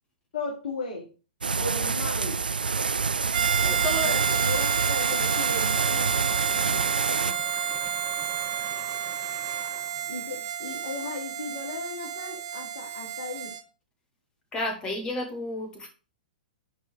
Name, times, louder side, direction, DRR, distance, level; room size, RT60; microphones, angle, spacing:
voice 1, 0.3-1.1 1.6-2.4 3.9-6.3 10.1-13.5, left 3 dB, 55° left, -2 dB, 2.6 m, -36 dB
sound 1, 1.4-7.3, right 5 dB, 75° right, 0.3 m, -27 dB
Harmonica, 3.3-13.6, right 8 dB, 50° right, 1.5 m, -30 dB
sound 2, 3.5-10.1, right 6 dB, 25° right, 2.3 m, -42 dB
voice 2, 3.6-4.2 6.7-6.8 7.2-7.4 14.5-15.9, left 1 dB, 20° left, 4 dB, 2.4 m, -32 dB
9.9 x 4.6 x 4.9 m, 0.35 s
figure-of-eight pair, 110°, 5 cm